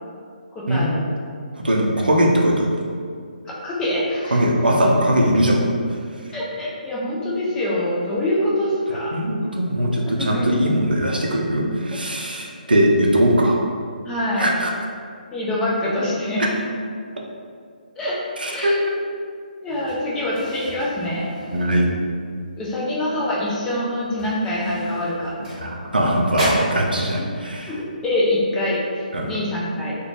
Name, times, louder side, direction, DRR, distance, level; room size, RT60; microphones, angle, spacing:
voice 1, 0.5-1.0 3.6-4.4 6.3-9.1 10.2-10.4 14.1-14.6 15.3-16.4 18.0-18.2 18.5-18.8 19.6-21.3 22.6-25.3 27.7-29.9, left 1 dB, 10° left, -6 dB, 0.4 m, -24 dB
voice 2, 1.5-2.7 4.3-5.6 9.1-13.6 14.4-14.7 18.4-19.0 21.5-21.8 25.4-27.7 29.1-29.3, equal, 80° right, -1 dB, 0.5 m, -20 dB
sound 1, 19.7-22.3 22.7-23.0 23.3-23.5 24.1-26.0 26.3-26.8, right 1 dB, 15° right, 1.0 m, -30 dB
2.4 x 2.2 x 2.9 m, 2.2 s
figure-of-eight pair, 140°, 5 cm